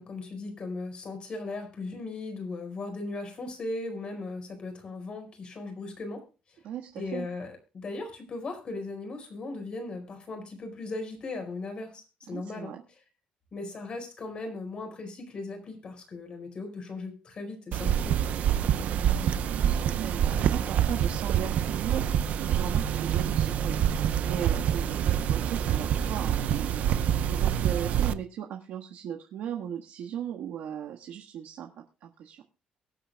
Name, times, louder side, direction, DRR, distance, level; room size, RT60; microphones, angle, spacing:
voice 1, 0.0-6.2 7.0-12.7 13.5-18.2, left 3 dB, 40° left, 5 dB, 4.9 m, -37 dB
voice 2, 6.6-7.3 12.3-12.8 18.6-32.4, right 9 dB, 80° right, 1 dB, 1.5 m, -38 dB
sound 1, 17.7-28.1, right 9 dB, 65° right, 0.7 m, -26 dB
23.0 x 8.8 x 2.2 m, 0.32 s
cardioid pair, 150°, 3 cm